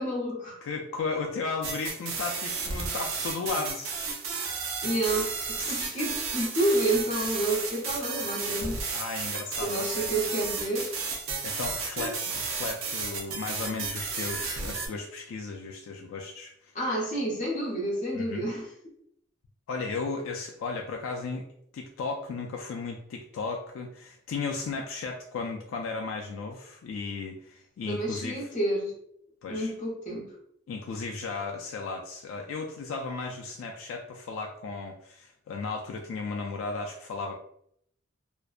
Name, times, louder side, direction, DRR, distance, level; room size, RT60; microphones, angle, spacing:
voice 1, 0.0-0.6 4.8-8.8 9.6-10.9 16.7-18.7 27.9-28.9 29.5-30.3, right 1 dB, 40° left, -3 dB, 0.8 m, -29 dB
voice 2, 0.6-4.0 5.6-5.8 8.9-10.1 11.4-16.7 18.1-18.5 19.7-21.5 21.7-28.4 29.4-29.7 30.7-37.4, left 4 dB, 75° left, 2 dB, 0.3 m, -35 dB
sound 1, 1.6-14.9, right 4 dB, 80° right, 0.5 m, -33 dB
2.5 x 2.1 x 2.3 m, 0.69 s
head